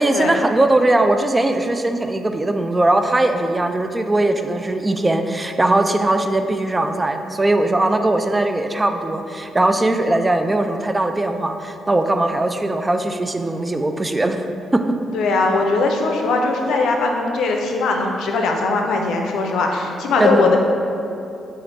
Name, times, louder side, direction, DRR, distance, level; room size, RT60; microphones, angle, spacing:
voice 1, 0.0-14.4 14.7-14.8 20.2-20.5, right 2 dB, 20° right, 7 dB, 0.3 m, -19 dB
voice 2, 15.1-20.6, left 3 dB, 75° left, 2 dB, 0.4 m, -20 dB
4.3 x 2.5 x 4.0 m, 2.7 s
supercardioid pair, 55°, 0 cm